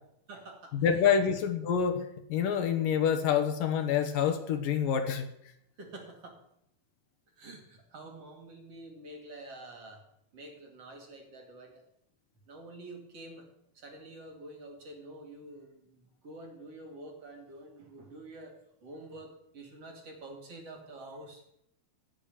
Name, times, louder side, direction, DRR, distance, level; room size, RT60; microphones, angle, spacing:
voice 1, 0.3-1.0 5.8-6.4 7.3-10.0 10.3-11.8 12.5-13.5 13.7-18.5 18.8-21.4, right 2 dB, 45° right, 3 dB, 2.9 m, -48 dB
voice 2, 0.8-5.3, left 7 dB, 70° left, 6 dB, 2.7 m, -27 dB
16.5 x 6.7 x 9.4 m, 0.76 s
omnidirectional pair, 4.3 m